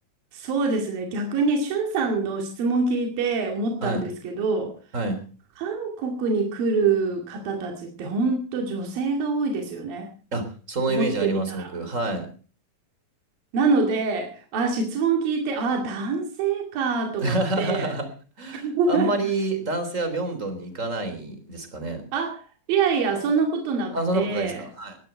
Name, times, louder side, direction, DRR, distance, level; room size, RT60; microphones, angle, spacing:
voice 1, 0.3-4.7 5.6-10.1 11.0-11.7 13.5-17.9 18.6-19.1 22.1-22.4 22.7-24.6, right 4 dB, 75° right, 2 dB, 4.0 m, -25 dB
voice 2, 10.3-12.3 17.2-18.1 18.4-22.0 23.9-25.0, right 2 dB, 20° right, 8 dB, 3.7 m, -27 dB
20.5 x 12.5 x 4.5 m, 0.39 s
omnidirectional pair, 4.1 m